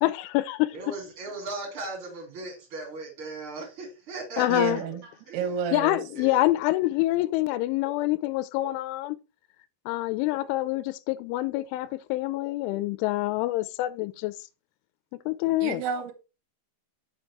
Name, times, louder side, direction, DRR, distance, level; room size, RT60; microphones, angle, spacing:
voice 1, 0.0-0.7 4.4-4.8 5.7-9.2 9.9-14.3 15.3-15.8, left 17 dB, 85° left, 2.8 m, -26 dB
voice 2, 0.7-5.0 5.3-5.4 6.1-6.4, right 3 dB, 35° right, 2.4 m, -37 dB
voice 3, 4.5-5.0 5.3-6.0 15.6-16.1, right 6 dB, 70° right, 2.5 m, -30 dB
6.5 x 5.0 x 4.6 m
omnidirectional pair, 5.9 m